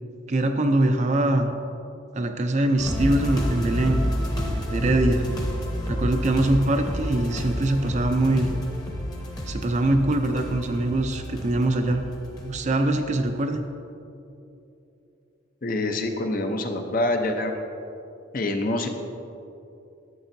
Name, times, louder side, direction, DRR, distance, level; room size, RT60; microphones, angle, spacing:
voice 1, 0.3-1.5 2.1-4.0 4.3-5.2 5.9-8.5 9.5-12.0 12.4-13.6, right 1 dB, 35° right, 6 dB, 0.5 m, -23 dB
sound 1, 2.8-13.0 13.5-13.6, equal, 20° left, 0.9 m, -30 dB
voice 2, 15.6-17.6 18.3-18.9, left 2 dB, 45° left, 5 dB, 0.6 m, -26 dB
11.5 x 8.0 x 2.7 m, 2.8 s
head